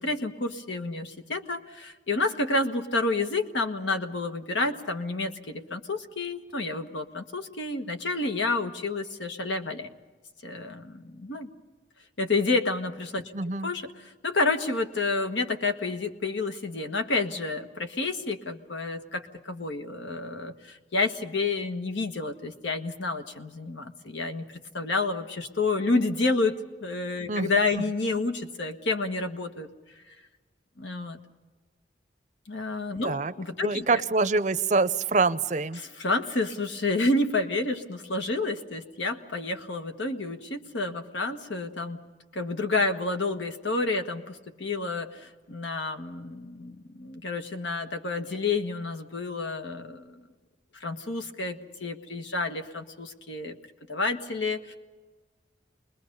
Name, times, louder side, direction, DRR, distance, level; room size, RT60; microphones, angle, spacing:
voice 1, 0.0-9.9 10.4-11.5 12.2-13.3 13.6-24.4 24.7-26.6 26.8-29.7 30.8-31.2 32.5-34.0 35.8-42.0 42.3-50.1 50.8-53.6 53.9-54.7, left 3 dB, 80° left, 6 dB, 1.4 m, -29 dB
voice 2, 13.3-13.7 27.3-27.5 33.0-33.3 33.6-35.8, right 3 dB, 40° right, 13 dB, 0.6 m, -25 dB
28.0 x 21.0 x 5.4 m, 1.3 s
head